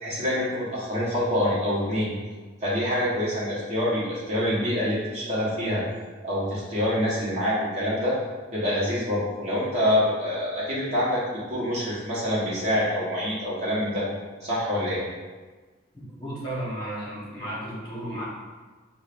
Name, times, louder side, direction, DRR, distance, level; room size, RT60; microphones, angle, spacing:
voice 1, 0.0-2.1 2.6-5.8 6.2-8.1 8.5-11.2 11.5-14.0 14.4-15.0, left 1 dB, 35° right, -8 dB, 1.1 m, -26 dB
voice 2, 16.2-18.2, right 1 dB, 25° left, -8 dB, 1.2 m, -33 dB
5.1 x 2.4 x 2.5 m, 1.3 s
head